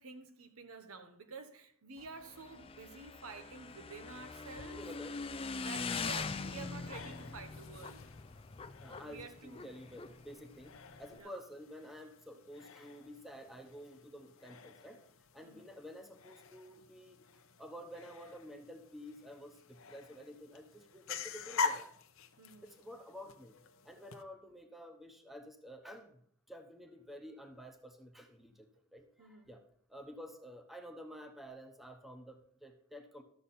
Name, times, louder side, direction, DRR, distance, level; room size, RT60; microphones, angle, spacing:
voice 1, 0.0-5.0 5.6-8.1 9.0-9.8 11.2-11.4 15.4-15.7 22.4-22.7 29.2-29.5, right 4 dB, 75° right, 1.0 m, -50 dB
Motorcycle / Engine, 2.0-11.2, left 4 dB, 25° left, 0.4 m, -43 dB
voice 2, 4.7-5.2 5.7-6.1 8.8-15.0 15.3-21.9 22.6-23.6 23.8-26.2 26.5-29.6 29.9-33.2, equal, ahead, 0.9 m, -51 dB
sound 1, 6.1-24.2, left 4 dB, 65° left, 0.7 m, -46 dB
13.0 x 6.6 x 4.2 m
head